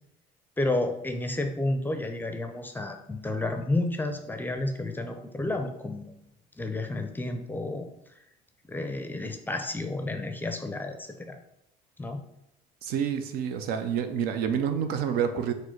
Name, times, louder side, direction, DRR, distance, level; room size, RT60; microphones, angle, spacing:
voice 1, 0.6-6.2 6.6-7.9 8.7-11.4 12.0-12.2, left 2 dB, 10° left, 5 dB, 0.5 m, -31 dB
voice 2, 12.8-15.5, right 8 dB, 70° right, 8 dB, 0.5 m, -28 dB
4.3 x 2.1 x 4.4 m, 0.80 s
supercardioid pair, 80°, 16 cm